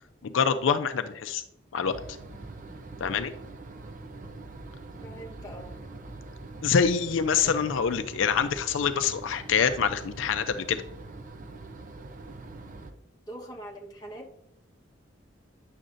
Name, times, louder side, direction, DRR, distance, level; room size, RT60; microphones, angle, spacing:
voice 1, 0.2-1.4 1.7-1.9 3.0-3.3 6.6-10.8, left 6 dB, 80° left, 9 dB, 0.4 m, -25 dB
sound 1, 1.8-12.9, right 2 dB, 45° right, 0.6 m, -43 dB
voice 2, 5.0-5.8 7.4-7.8 13.3-14.3, right 1 dB, 20° left, -2 dB, 1.1 m, -43 dB
9.8 x 6.5 x 2.6 m, 0.79 s
head